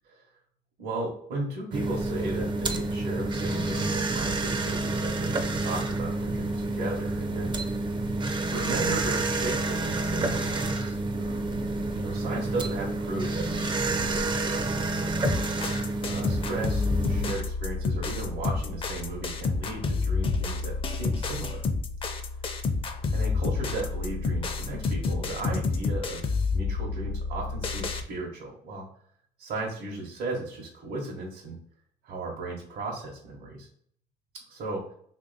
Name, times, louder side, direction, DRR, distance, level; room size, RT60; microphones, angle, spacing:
voice 1, 0.8-7.6 8.5-11.4 11.9-15.1 16.0-21.6 23.1-26.2 26.5-28.9 29.4-31.6 32.0-33.7 34.5-34.9, right 2 dB, 70° right, -3 dB, 0.9 m, -35 dB
sound 1, 1.7-17.3, right 2 dB, 30° right, 0.4 m, -29 dB
sound 2, 15.2-28.0, left 4 dB, 30° left, 0.5 m, -29 dB
3.0 x 2.7 x 3.9 m, 0.64 s
cardioid pair, 110°, 17 cm